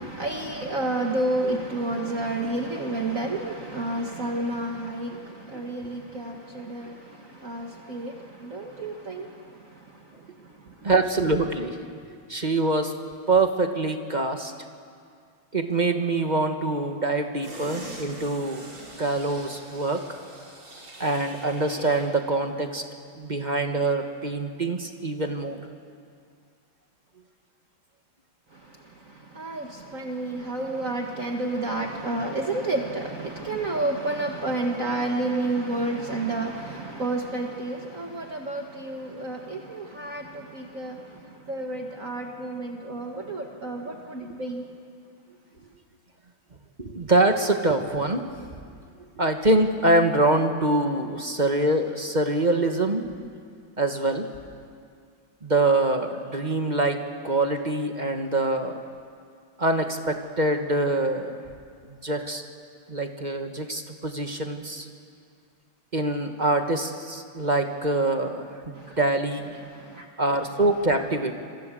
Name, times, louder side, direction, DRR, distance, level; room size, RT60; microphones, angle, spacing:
voice 1, 0.0-10.0 10.4-10.5 10.8-10.9 28.5-44.7 68.7-69.0 69.7-70.1, right 2 dB, 40° right, 2 dB, 1.9 m, -30 dB
voice 2, 10.8-11.8 12.3-12.9 13.3-14.5 15.5-18.6 19.0-20.0 21.0-22.8 23.1-25.6 46.8-48.3 49.2-53.0 53.8-54.2 55.4-58.8 59.6-61.4 62.0-62.4 62.9-64.9 65.9-69.5 70.2-71.3, right 2 dB, 25° right, 5 dB, 1.4 m, -24 dB
sound 1, 17.4-22.2 22.5-22.6, right 1 dB, 75° right, 5.6 m, -42 dB
27.0 x 24.5 x 7.7 m, 2.2 s
omnidirectional pair, 2.3 m